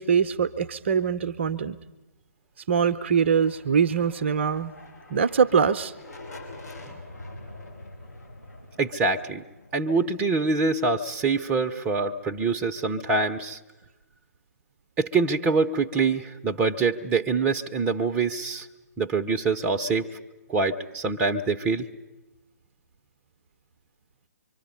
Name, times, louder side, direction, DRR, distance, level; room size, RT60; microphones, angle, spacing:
voice 1, 0.0-1.8 2.7-4.7 5.1-5.9, right 6 dB, 45° right, 11 dB, 0.7 m, -23 dB
sound 1, 3.1-10.9, left 2 dB, 70° left, 5.0 m, -45 dB
voice 2, 8.8-9.4 9.7-13.6 15.0-18.7 19.0-20.1 20.5-21.9, right 4 dB, 15° right, 3 dB, 0.8 m, -25 dB
25.5 x 24.0 x 5.4 m, 1.0 s
figure-of-eight pair, 130°, 9 cm